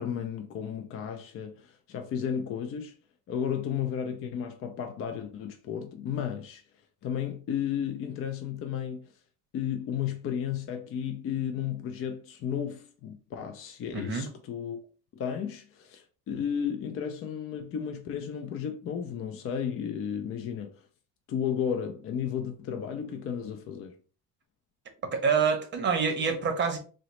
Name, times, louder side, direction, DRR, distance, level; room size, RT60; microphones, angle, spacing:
voice 1, 0.0-3.0 3.3-6.6 7.0-9.0 9.5-14.8 15.1-20.8 21.3-24.0, left 8 dB, 45° left, 0.4 m, -33 dB
voice 2, 13.9-14.3 25.1-26.8, right 5 dB, 35° right, 0.7 m, -26 dB
3.8 x 2.0 x 3.0 m
cardioid pair, 150°, 31 cm